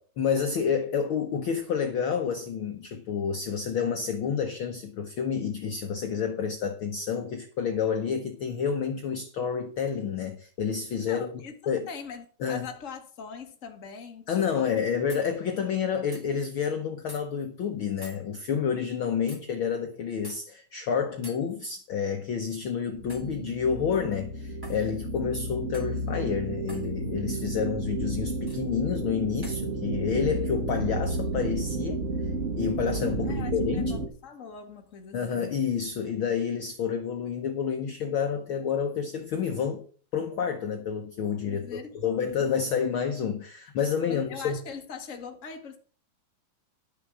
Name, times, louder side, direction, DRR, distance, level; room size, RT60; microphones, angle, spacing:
voice 1, 0.2-11.3 11.7-11.9 12.4-12.7 14.3-32.0 32.6-33.9 35.1-39.8 40.1-44.6, left 7 dB, 70° left, 1.2 m, -29 dB
voice 2, 11.0-14.7 33.3-35.6 41.5-42.3 44.1-45.8, left 6 dB, 35° left, 1.4 m, -42 dB
sound 1, 15.1-15.3 16.1-16.3 17.1-17.2 18.0-18.2 19.3-19.4 20.2-20.4 21.2-21.4 23.1-23.3 24.6-24.8 25.7-26.0 26.7-26.9 28.5-28.6 29.4-29.6, equal, 5° right, 3.4 m, -45 dB
sound 2, 22.9-34.1, right 2 dB, 70° right, 0.7 m, -32 dB
11.5 x 6.9 x 6.2 m
omnidirectional pair, 3.6 m